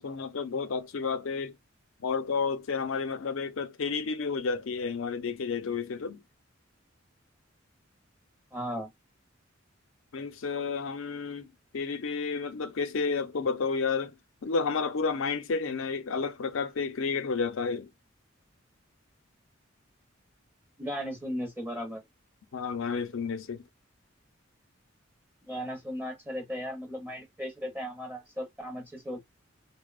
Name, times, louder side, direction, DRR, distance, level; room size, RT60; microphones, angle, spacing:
voice 1, 0.0-1.5 2.0-6.2 10.1-11.5 11.7-14.1 14.4-17.9 22.5-23.6, left 5 dB, 80° left, 0.5 m, -31 dB
voice 2, 8.5-8.9 20.8-22.0 25.5-29.2, equal, 10° right, 0.6 m, -36 dB
2.7 x 2.0 x 2.2 m
head